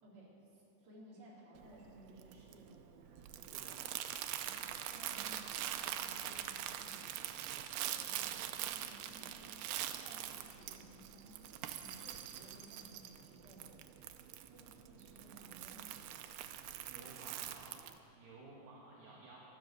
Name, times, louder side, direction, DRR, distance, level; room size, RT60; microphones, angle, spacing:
voice 1, 0.0-3.6 4.4-9.6 10.0-13.8 14.5-16.2, right 1 dB, 40° right, -6 dB, 4.3 m, -58 dB
Crumpling crinkling, 1.6-18.0, right 11 dB, 85° right, 2.3 m, -44 dB
voice 2, 16.8-17.7 18.1-19.4, right 3 dB, 60° right, -4 dB, 3.2 m, -55 dB
15.5 x 12.0 x 6.7 m, 2.7 s
omnidirectional pair, 5.0 m